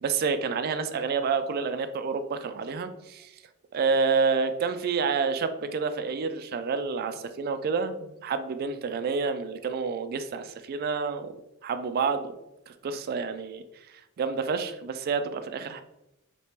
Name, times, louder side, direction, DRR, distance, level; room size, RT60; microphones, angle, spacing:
voice 1, 0.0-3.3 3.7-11.3 11.6-12.3 12.7-15.8, right 5 dB, 45° right, 9 dB, 0.3 m, -29 dB
3.5 x 2.9 x 2.8 m, 0.90 s
head